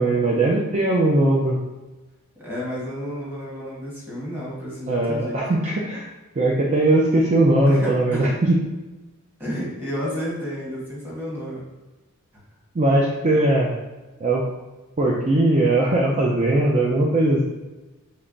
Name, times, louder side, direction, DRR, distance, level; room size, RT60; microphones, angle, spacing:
voice 1, 0.0-1.6 4.9-6.1 6.3-8.6 12.7-13.7 14.2-14.5 15.0-17.4, right 2 dB, 35° right, -3 dB, 0.4 m, -19 dB
voice 2, 2.3-5.4 7.7-8.3 9.4-11.6, equal, 10° right, -6 dB, 1.4 m, -31 dB
3.3 x 3.2 x 3.8 m, 1.2 s
head